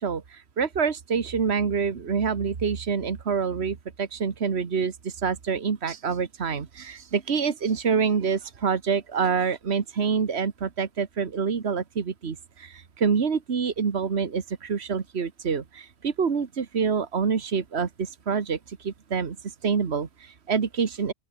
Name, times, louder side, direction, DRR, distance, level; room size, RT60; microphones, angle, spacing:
voice 1, 0.0-19.4 19.6-21.1, right 6 dB, 75° right, 1.7 m, -27 dB
open air
omnidirectional pair, 1.1 m